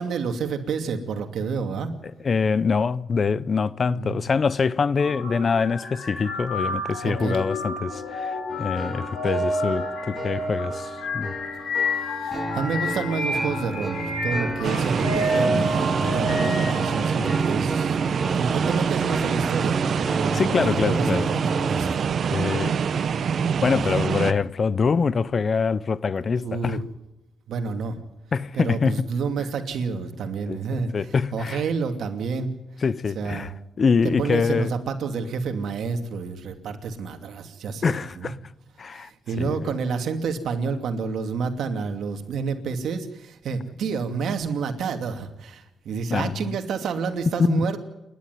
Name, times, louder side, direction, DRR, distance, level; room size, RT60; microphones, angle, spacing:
voice 1, 0.0-1.9 3.9-4.2 7.0-7.4 11.9-17.9 18.3-22.1 23.2-23.5 26.4-26.8 27.5-27.9 28.5-32.5 33.1-33.5 34.2-38.3 38.9-47.8, right 5 dB, 70° right, 2.6 m, -29 dB
voice 2, 2.2-11.3 20.3-21.3 22.3-22.8 23.6-26.8 28.3-29.1 30.5-30.6 30.9-31.6 32.8-33.5 33.8-34.8 37.8-38.4 38.8-39.1 39.4-39.6 46.1-46.4 47.5-47.6, left 5 dB, 40° left, 0.7 m, -24 dB
sound 1, 5.0-17.4, left 1 dB, 85° left, 7.6 m, -29 dB
sound 2, 8.5-21.9, right 2 dB, 15° right, 2.8 m, -32 dB
sound 3, 14.6-24.3, right 7 dB, 55° right, 1.0 m, -25 dB
28.0 x 11.5 x 9.4 m
cardioid pair, 100°, 0 cm